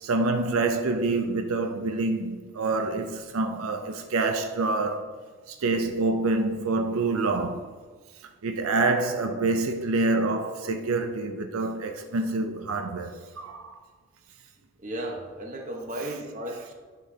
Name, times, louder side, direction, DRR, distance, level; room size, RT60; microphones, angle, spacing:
voice 1, 0.0-5.1 5.5-7.7 8.4-13.8, right 3 dB, 90° right, 0.5 m, -27 dB
voice 2, 14.8-16.7, right 1 dB, 35° right, 1.1 m, -35 dB
10.5 x 6.1 x 2.8 m
head